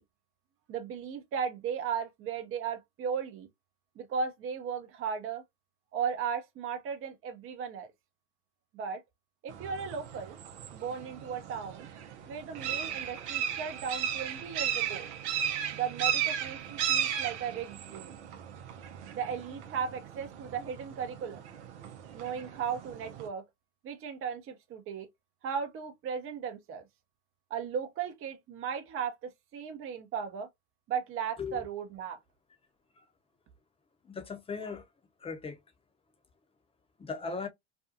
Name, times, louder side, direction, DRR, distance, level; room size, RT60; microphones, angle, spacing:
voice 1, 0.7-3.5 4.0-5.4 5.9-7.9 8.7-9.0 9.4-10.4 10.7-11.9 12.3-15.1 15.7-18.2 19.1-21.5 22.1-23.4 23.8-25.1 25.4-26.8 27.5-30.5 30.9-32.2, right 7 dB, 40° right, 0.8 m, -36 dB
sound 1, 9.5-23.3, right 9 dB, 70° right, 0.8 m, -36 dB
voice 2, 34.0-34.9 35.2-35.6 37.0-37.5, left 5 dB, 15° left, 0.8 m, -37 dB
2.6 x 2.3 x 2.6 m
hypercardioid pair, 85°, 35 cm